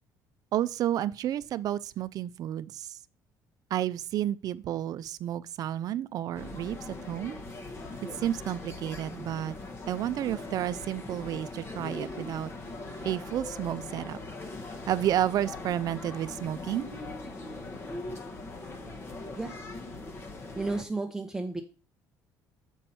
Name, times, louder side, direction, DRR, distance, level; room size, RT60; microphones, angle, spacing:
voice 1, 0.5-3.0 3.7-7.4 8.0-9.6 9.9-12.5 13.0-14.2 14.9-16.9, right 12 dB, 55° right, 0.4 m, -31 dB
sound 1, 6.3-20.8, left 2 dB, 35° left, 1.1 m, -40 dB
voice 2, 20.5-21.6, right 3 dB, 5° right, 0.8 m, -33 dB
7.2 x 5.4 x 4.2 m
cardioid pair, 120°, 7 cm